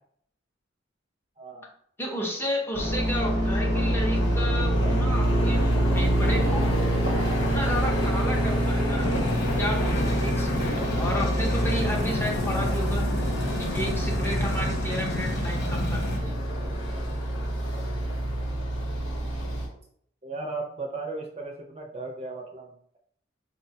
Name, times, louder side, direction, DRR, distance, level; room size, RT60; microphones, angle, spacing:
voice 1, 1.4-1.7 20.2-23.0, right 3 dB, 30° right, 2 dB, 0.5 m, -36 dB
voice 2, 2.0-6.7 7.5-9.1 9.6-13.1 13.6-16.4, equal, 10° left, -1 dB, 0.6 m, -32 dB
sound 1, 2.7-19.7, equal, 80° left, 1.1 m, -26 dB
sound 2, 9.0-16.2, left 2 dB, 55° left, 0.5 m, -32 dB
4.5 x 2.2 x 2.7 m, 0.65 s
head